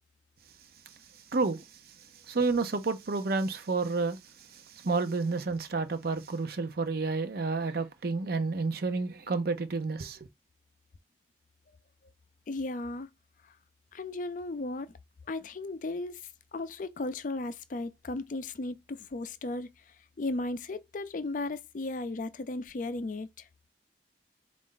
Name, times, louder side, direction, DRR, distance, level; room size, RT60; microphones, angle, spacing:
voice 1, 1.3-1.7 2.3-10.3, right 3 dB, 55° right, 0.6 m, -30 dB
voice 2, 12.5-13.1 13.9-14.9 15.3-16.2 16.5-19.7 20.2-23.4, left 2 dB, 45° left, 0.4 m, -35 dB
4.3 x 2.5 x 3.7 m
head